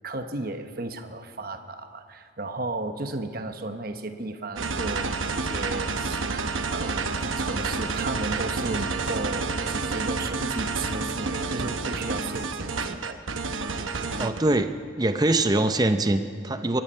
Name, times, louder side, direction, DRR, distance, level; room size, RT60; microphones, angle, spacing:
voice 1, 0.0-7.0 7.4-13.2, right 2 dB, 50° right, 7 dB, 1.0 m, -34 dB
sound 1, 4.6-14.4, right 4 dB, 85° right, 0.9 m, -29 dB
voice 2, 14.2-14.7 15.0-16.8, right 2 dB, 20° right, 9 dB, 0.6 m, -23 dB
23.0 x 10.5 x 5.5 m, 2.3 s
head